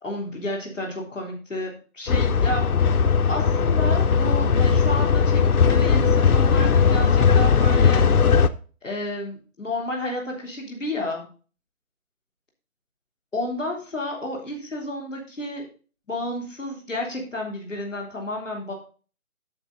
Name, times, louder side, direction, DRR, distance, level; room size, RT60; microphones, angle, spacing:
voice 1, 0.0-3.0 3.3-8.1 8.8-11.3 13.3-15.7 16.1-18.7, left 1 dB, ahead, -18 dB, 1.6 m, -31 dB
sound 1, 2.1-8.5, left 6 dB, 85° left, 0.9 m, -18 dB
9.0 x 7.1 x 3.9 m, 0.37 s
figure-of-eight pair, 175°, 43 cm